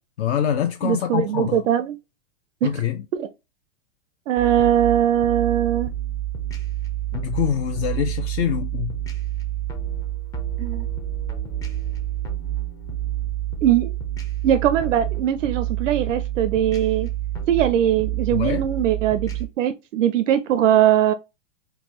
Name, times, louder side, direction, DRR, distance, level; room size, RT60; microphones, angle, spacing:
voice 1, 0.2-1.6 2.6-3.0 7.1-9.0 18.3-18.6, left 10 dB, 60° left, 0.6 m, -25 dB
voice 2, 0.8-2.0 3.1-3.3 4.3-5.9 10.6-10.9 13.6-13.9 14.4-17.1 17.5-19.3 19.6-21.1, right 10 dB, 85° right, 0.5 m, -20 dB
sound 1, 4.4-19.5, right 12 dB, 10° left, 0.4 m, -28 dB
3.8 x 2.2 x 2.9 m
hypercardioid pair, 130°, 37 cm